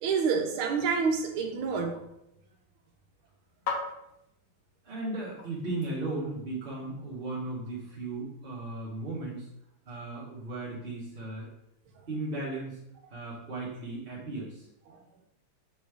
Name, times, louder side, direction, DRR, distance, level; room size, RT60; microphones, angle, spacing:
voice 1, 0.0-2.0 14.9-15.0, right 5 dB, 75° right, 4 dB, 1.4 m, -28 dB
sound 1, 1.6-6.4, left 4 dB, 60° left, 1.1 m, -43 dB
voice 2, 4.8-9.5 9.9-11.5 12.1-12.8 13.1-14.7, right 2 dB, 40° right, -8 dB, 0.9 m, -36 dB
3.6 x 3.0 x 4.7 m, 0.81 s
omnidirectional pair, 2.4 m